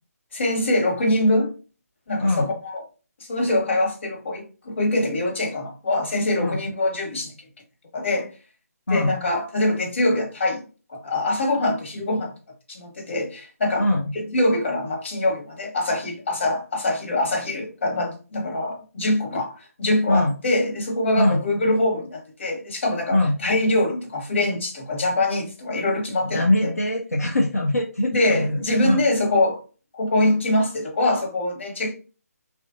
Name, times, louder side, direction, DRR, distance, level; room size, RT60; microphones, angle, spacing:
voice 1, 0.3-1.5 2.1-2.8 3.3-7.3 7.9-8.3 8.9-12.3 12.7-13.9 14.1-26.8 28.1-29.6 29.9-31.9, left 1 dB, 45° left, 1.2 m, -24 dB
voice 2, 2.2-2.5 6.4-6.6 8.9-9.2 13.8-14.1 20.1-20.3 21.2-21.4 23.1-23.4 26.3-29.0, left 1 dB, 70° left, 0.6 m, -22 dB
3.3 x 2.5 x 2.5 m
figure-of-eight pair, 150°, 9 cm